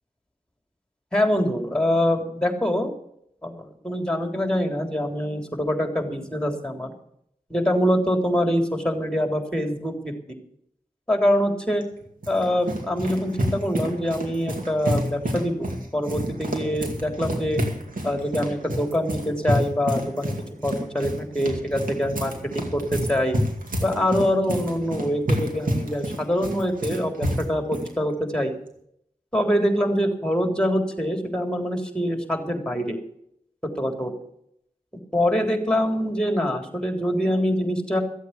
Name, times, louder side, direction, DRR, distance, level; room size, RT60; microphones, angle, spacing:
voice 1, 1.1-2.9 3.4-6.9 7.5-10.1 11.1-11.8 12.3-15.7 15.9-17.6 18.0-23.4 23.8-28.5 29.3-33.0 33.8-34.2 35.1-38.0, equal, 5° left, 5 dB, 3.6 m, -24 dB
sound 1, 11.8-27.9, equal, 85° right, 2.3 m, -29 dB
14.5 x 8.2 x 8.2 m, 0.72 s
cardioid pair, 45°, 14 cm